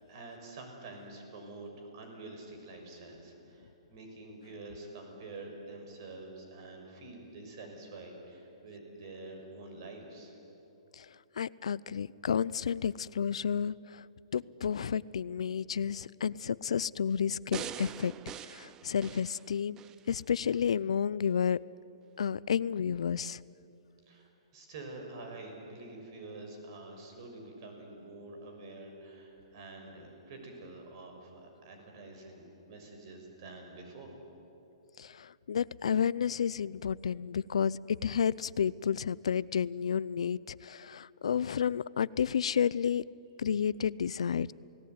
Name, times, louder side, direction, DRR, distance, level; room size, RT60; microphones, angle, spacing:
voice 1, 0.1-10.4 24.1-34.2, right 2 dB, 45° right, 4 dB, 6.2 m, -47 dB
voice 2, 11.4-14.0 14.3-18.1 18.5-19.8 20.1-21.6 22.2-23.4 35.0-43.0 43.4-44.5, left 7 dB, 85° left, 21 dB, 0.5 m, -31 dB
sound 1, 17.5-20.0 20.5-20.6, right 9 dB, 20° right, 0.6 m, -43 dB
29.0 x 18.0 x 9.6 m, 3.0 s
hypercardioid pair, 160°, 3 cm